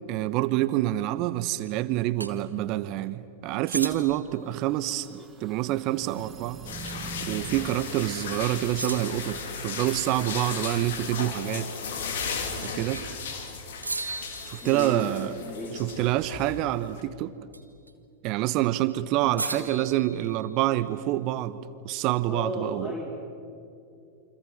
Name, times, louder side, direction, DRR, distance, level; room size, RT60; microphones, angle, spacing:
voice 1, 0.1-6.6 7.2-11.7 12.6-13.0 14.5-15.3 15.8-17.3 18.2-21.6 21.8-22.9, right 15 dB, 40° right, 15 dB, 1.0 m, -27 dB
sound 1, 2.2-2.3 3.7-4.3 6.9-7.1 7.5-7.6 8.8-9.3 12.6-13.2 13.8-15.2 17.5-17.9 19.4-20.8, right 2 dB, 80° right, 1.7 m, -36 dB
sound 2, 4.4-8.1, right 5 dB, 20° right, 1.9 m, -43 dB
sound 3, 6.6-17.0, left 5 dB, 60° left, 3.5 m, -36 dB
voice 2, 14.6-15.8 19.2-19.7 22.3-23.1, left 1 dB, 20° left, -1 dB, 4.2 m, -35 dB
29.0 x 25.0 x 7.6 m, 2.5 s
figure-of-eight pair, 90°, 0 cm